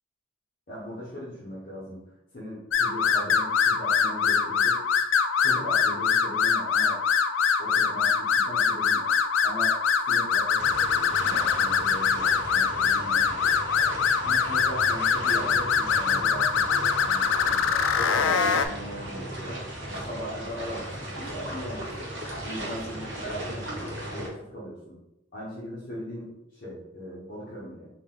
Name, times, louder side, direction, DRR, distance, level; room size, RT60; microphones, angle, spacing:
voice 1, 0.7-2.0 2.3-4.9 5.4-7.0 7.6-9.1 9.4-9.8 10.1-13.7 14.2-19.6 20.0-22.1 22.4-25.0 25.3-27.9, equal, 45° left, -8 dB, 1.0 m, -39 dB
sound 1, 2.7-18.7, left 6 dB, 80° left, 0.3 m, -24 dB
sound 2, 10.6-24.3, right 1 dB, 75° right, 1.2 m, -37 dB
3.9 x 2.4 x 3.8 m, 0.91 s
head